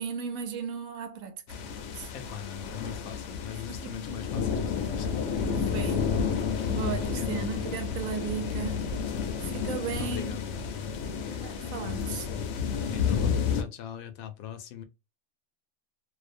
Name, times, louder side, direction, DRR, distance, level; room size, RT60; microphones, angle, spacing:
voice 1, 0.0-1.4 1.9-2.1 3.7-4.0 5.4-6.2 6.7-8.8 9.4-10.4 11.3-12.3, right 7 dB, 80° right, 1.0 m, -36 dB
sound 1, 1.5-13.6, left 6 dB, 65° left, 0.8 m, -31 dB
voice 2, 2.1-5.6 5.9-6.1 7.2-7.7 10.0-10.6 12.9-14.8, left 10 dB, 90° left, 1.0 m, -41 dB
2.6 x 2.1 x 2.4 m
omnidirectional pair, 1.4 m